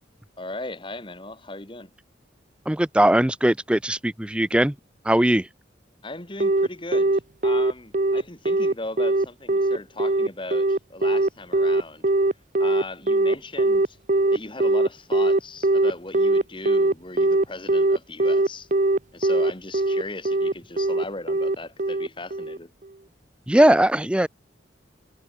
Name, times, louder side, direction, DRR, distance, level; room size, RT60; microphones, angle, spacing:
voice 1, 0.4-1.9 6.0-12.1 12.6-14.0 14.3-18.7 19.1-22.7, left 2 dB, 25° left, 2.6 m, -37 dB
voice 2, 2.7-4.7 5.0-5.5 23.5-24.3, right 1 dB, 5° right, 0.4 m, -19 dB
Telephone, 6.4-22.6, right 2 dB, 40° right, 0.9 m, -21 dB
head